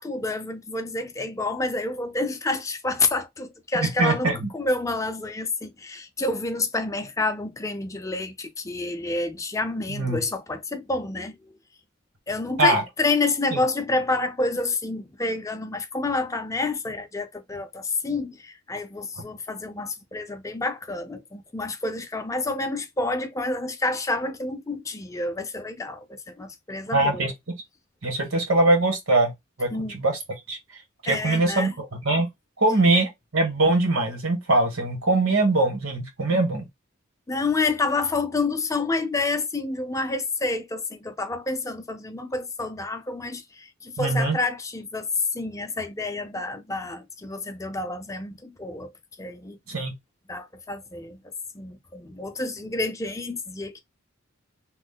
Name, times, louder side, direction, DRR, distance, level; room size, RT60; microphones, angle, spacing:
voice 1, 0.0-11.5 12.3-27.3 29.7-30.0 31.0-31.7 37.3-48.9 49.2-49.6 50.3-51.2 51.5-53.8, left 3 dB, 15° left, 0.5 m, -28 dB
voice 2, 3.8-4.5 9.9-10.2 12.6-12.8 13.5-13.6 26.9-27.3 28.0-29.3 29.6-30.2 30.5-30.6 31.0-32.3 32.6-36.7 44.0-44.4 49.7-49.9, right 2 dB, 75° right, 1.3 m, -22 dB
3.1 x 2.0 x 3.5 m
head